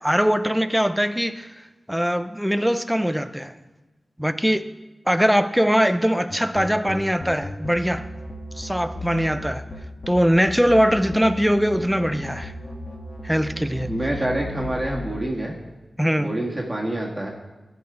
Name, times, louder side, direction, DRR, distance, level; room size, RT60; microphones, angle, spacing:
voice 1, 0.0-3.5 4.2-4.6 5.1-8.1 8.6-9.6 10.1-12.5 13.2-13.9 16.0-16.3, equal, 5° right, 11 dB, 0.6 m, -21 dB
sound 1, 6.3-15.2, left 1 dB, 65° left, 1.5 m, -35 dB
voice 2, 13.9-15.5 16.2-17.3, right 1 dB, 20° right, -2 dB, 1.6 m, -26 dB
13.5 x 6.0 x 4.9 m, 1.1 s
cardioid pair, 50°, 0 cm